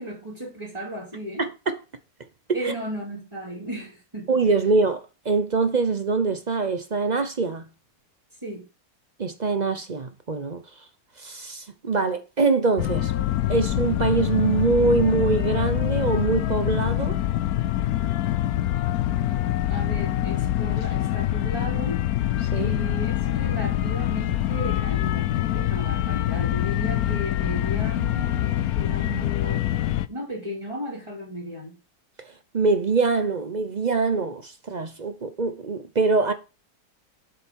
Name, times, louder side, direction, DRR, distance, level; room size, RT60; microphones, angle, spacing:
voice 1, 0.0-1.4 2.5-4.3 8.4-8.6 19.7-22.0 22.5-29.7 30.1-31.8, equal, 20° right, 2.8 m, -35 dB
voice 2, 1.4-1.8 2.6-2.7 4.3-7.7 9.2-10.6 11.2-13.1 13.5-17.2 22.5-22.7 32.5-36.3, right 4 dB, 40° right, 0.6 m, -24 dB
sound 1, 12.8-30.1, left 13 dB, 70° left, 1.1 m, -25 dB
7.8 x 6.9 x 4.6 m
omnidirectional pair, 1.7 m